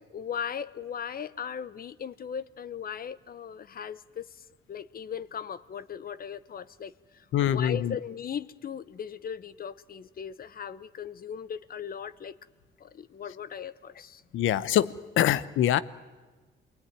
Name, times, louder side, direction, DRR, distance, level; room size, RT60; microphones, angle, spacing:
voice 1, 0.0-12.3 12.8-14.2, left 8 dB, 50° left, 16 dB, 0.9 m, -38 dB
voice 2, 7.3-8.0 14.3-15.8, left 11 dB, 80° left, 16 dB, 0.9 m, -24 dB
27.0 x 20.0 x 9.6 m, 1.3 s
cardioid pair, 90°, 20 cm